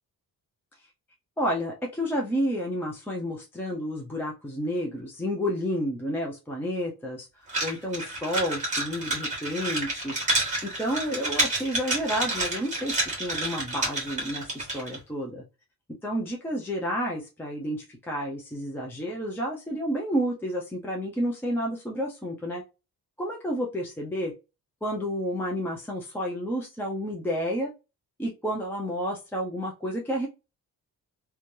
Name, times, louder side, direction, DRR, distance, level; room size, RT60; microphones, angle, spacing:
voice 1, 1.4-7.3 7.6-10.1 10.6-15.4 16.0-22.6 23.2-24.3 24.8-27.7 28.2-30.3, equal, 5° left, -2 dB, 0.3 m, -30 dB
sound 1, 7.5-15.0, right 2 dB, 20° right, 1.1 m, -29 dB
3.1 x 2.2 x 2.5 m, 0.27 s
wide cardioid pair, 175°, 38 cm